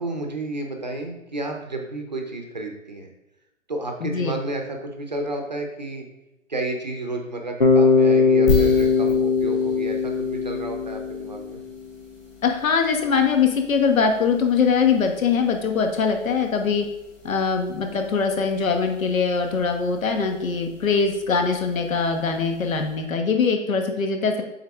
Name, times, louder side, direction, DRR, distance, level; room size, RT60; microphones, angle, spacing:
voice 1, 0.0-3.1 3.7-6.1 6.5-11.6, right 2 dB, 35° right, 3 dB, 0.6 m, -31 dB
voice 2, 4.0-4.3 12.4-16.8 17.2-24.4, left 5 dB, 80° left, 4 dB, 1.3 m, -22 dB
Bass guitar, 7.6-11.7, left 4 dB, 40° left, 0.4 m, -20 dB
sound 1, 8.5-23.2, left 3 dB, 10° left, 1.2 m, -37 dB
7.8 x 3.8 x 3.5 m, 0.96 s
hypercardioid pair, 180°, 40 cm